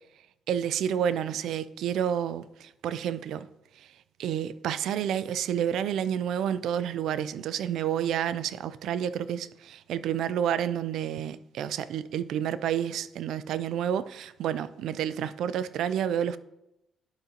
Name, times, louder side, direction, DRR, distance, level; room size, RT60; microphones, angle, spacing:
voice 1, 0.5-3.5 3.8-3.9 4.2-16.4, right 9 dB, 80° right, 0.3 m, -29 dB
10.5 x 5.0 x 2.9 m
cardioid pair, 90°, 0 cm